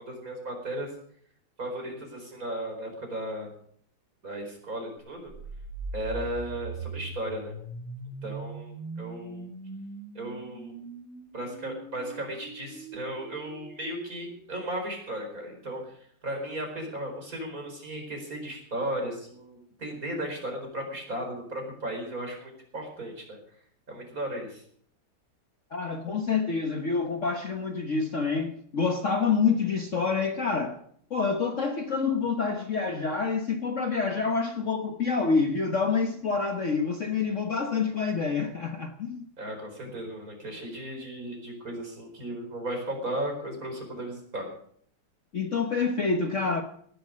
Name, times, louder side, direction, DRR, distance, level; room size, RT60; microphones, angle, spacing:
voice 1, 0.1-0.9 1.6-3.5 4.2-5.3 5.9-7.5 8.2-8.7 9.0-9.4 10.1-10.7 11.3-15.8 16.2-23.4 23.9-24.6 39.4-44.5, right 1 dB, 45° right, 5.0 m, -35 dB
sound 1, 5.1-15.0, right 3 dB, 90° right, 4.0 m, -41 dB
voice 2, 25.7-30.8 31.1-39.3 45.3-46.6, left 5 dB, 45° left, 1.3 m, -27 dB
18.5 x 11.0 x 6.4 m
omnidirectional pair, 2.1 m